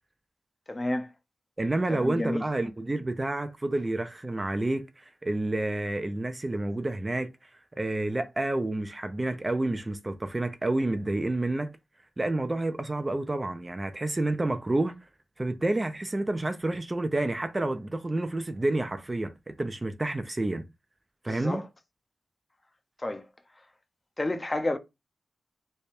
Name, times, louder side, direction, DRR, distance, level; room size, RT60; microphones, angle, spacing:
voice 1, 0.7-1.1 1.9-2.4 21.3-21.7 23.0-23.3 24.2-24.8, left 1 dB, 25° left, 0.6 m, -30 dB
voice 2, 1.6-7.3 7.7-11.7 12.2-14.9 15.4-20.6 21.2-21.6, right 2 dB, 25° right, 0.5 m, -29 dB
3.3 x 2.2 x 4.2 m
cardioid pair, 70°, 0 cm